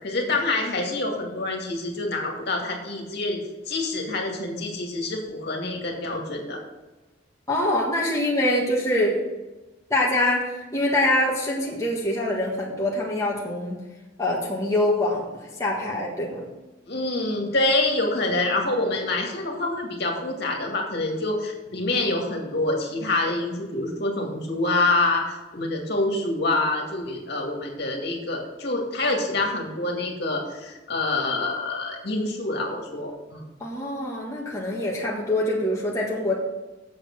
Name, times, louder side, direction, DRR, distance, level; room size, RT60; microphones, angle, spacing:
voice 1, 0.0-3.4 3.7-6.6 16.9-33.4, left 2 dB, 60° left, 1 dB, 2.2 m, -26 dB
voice 2, 7.5-9.2 9.9-13.8 14.2-16.5 33.6-36.4, left 1 dB, 15° left, -4 dB, 1.6 m, -24 dB
8.1 x 7.7 x 6.2 m, 1.1 s
head